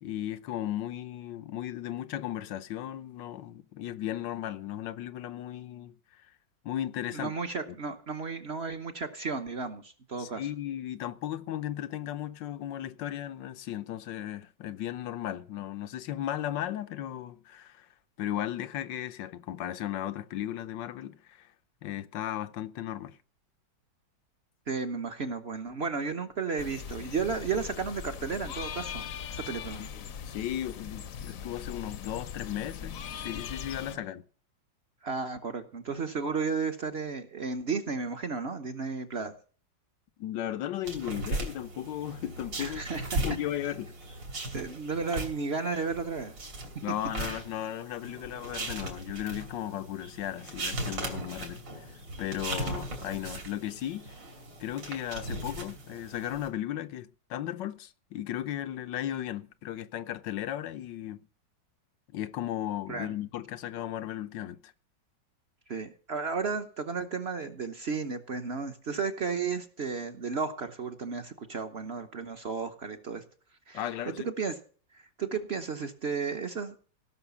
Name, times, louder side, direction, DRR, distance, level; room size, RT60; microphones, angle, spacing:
voice 1, 0.0-6.3 6.6-7.3 7.7-7.8 10.2-17.9 18.2-21.5 21.8-23.2 29.8-34.2 40.2-42.8 43.2-43.9 46.8-54.1 54.6-61.3 62.1-64.7 73.7-74.3, left 12 dB, 80° left, 1.4 m, -36 dB
voice 2, 7.1-10.4 24.7-29.9 35.0-39.3 42.6-43.2 44.5-46.3 52.7-52.8 62.9-63.1 65.7-73.2 73.7-73.8 74.2-74.6 74.9-76.8, right 5 dB, 45° right, 0.9 m, -33 dB
sound 1, 26.6-34.0, left 8 dB, 60° left, 1.0 m, -40 dB
sound 2, 40.8-56.5, right 2 dB, 85° right, 3.5 m, -38 dB
17.0 x 6.3 x 7.0 m
omnidirectional pair, 1.9 m